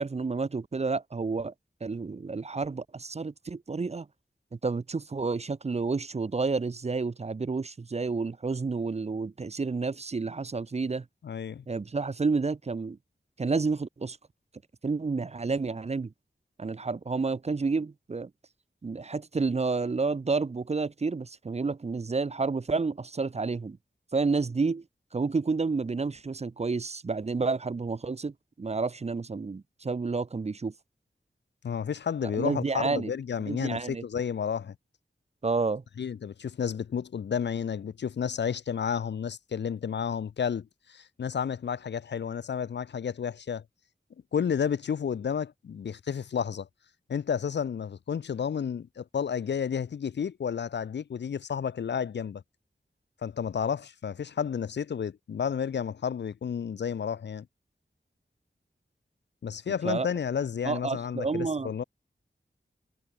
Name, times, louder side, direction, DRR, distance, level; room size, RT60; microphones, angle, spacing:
voice 1, 0.0-1.5 1.8-4.1 4.5-11.1 11.7-13.0 13.4-14.2 14.8-16.1 16.6-18.3 18.8-23.8 24.1-24.8 25.1-30.7 32.2-33.1 33.5-34.0 35.4-35.8 59.8-60.1 60.6-61.7, right 4 dB, 35° right, 0.4 m, -30 dB
voice 2, 11.2-11.6 31.6-34.8 36.0-43.6 44.3-46.7 47.1-52.4 53.2-57.5 59.4-61.8, left 7 dB, 65° left, 0.4 m, -31 dB
wide cardioid pair, 55°, 19 cm